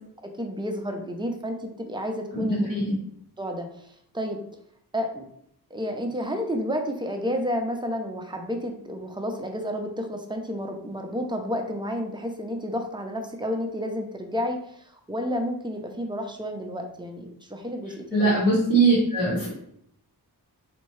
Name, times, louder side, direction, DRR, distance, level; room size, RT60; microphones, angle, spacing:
voice 1, 0.2-2.7 3.4-4.4 4.9-5.3 5.7-18.4, equal, 10° right, 3 dB, 0.5 m, -31 dB
voice 2, 2.3-3.0 18.1-19.5, right 2 dB, 60° left, -9 dB, 1.5 m, -21 dB
4.3 x 2.7 x 3.1 m, 0.70 s
wide cardioid pair, 80°, 39 cm